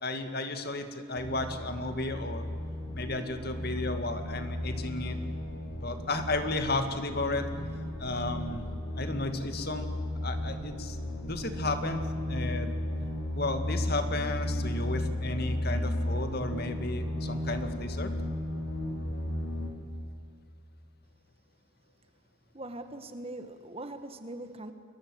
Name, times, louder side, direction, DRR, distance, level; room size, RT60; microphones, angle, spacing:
voice 1, 0.0-2.4 2.9-5.2 5.8-7.5 8.0-8.6 9.0-9.9 10.2-11.0 11.2-12.0 12.3-12.7 13.4-18.1, left 2 dB, 50° left, 7 dB, 2.2 m, -33 dB
sound 1, 1.2-19.7, left 1 dB, 80° left, 4.9 m, -34 dB
voice 2, 22.5-24.7, right 1 dB, 30° right, 8 dB, 1.5 m, -41 dB
30.0 x 22.0 x 7.9 m, 2.4 s
head